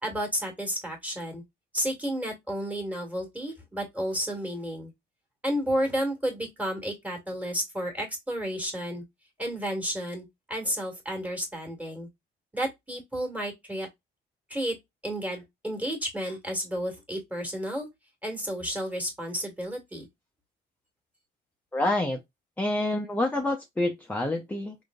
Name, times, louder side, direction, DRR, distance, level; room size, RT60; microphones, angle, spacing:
voice 1, 0.0-1.4 1.7-4.9 5.4-9.0 9.4-12.1 12.5-13.9 14.5-14.8 15.0-17.9 18.2-20.1, equal, 5° right, 1.7 m, -31 dB
voice 2, 21.7-22.2 22.6-24.8, left 1 dB, 10° left, 0.6 m, -27 dB
3.5 x 2.6 x 2.3 m
cardioid pair, 90°, 20 cm